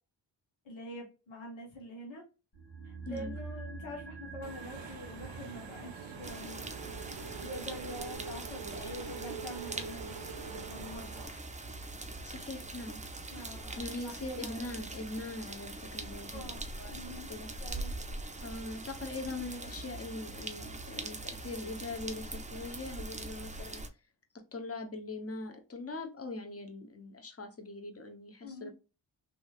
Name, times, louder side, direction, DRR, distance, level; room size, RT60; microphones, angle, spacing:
voice 1, 0.6-2.2 2.8-6.7 7.4-10.2 10.4-11.4 13.3-14.7 16.3-16.6 16.9-17.3 17.6-18.0 28.4-28.7, left 1 dB, 80° left, -2 dB, 1.3 m, -45 dB
sound 1, 2.5-12.8 13.0-13.1, right 4 dB, 65° left, 1.6 m, -49 dB
Engine / Mechanisms, 4.4-11.3, right 6 dB, 70° right, 0.6 m, -44 dB
sound 2, 6.2-23.9, right 2 dB, 15° right, 0.5 m, -42 dB
voice 2, 12.3-13.0 13.4-13.5 13.8-16.5 16.8-17.0 17.3-17.5 18.4-23.8 24.5-28.7, left 2 dB, 30° left, 6 dB, 0.9 m, -41 dB
3.0 x 2.7 x 2.4 m, 0.29 s
cardioid pair, 45°, 46 cm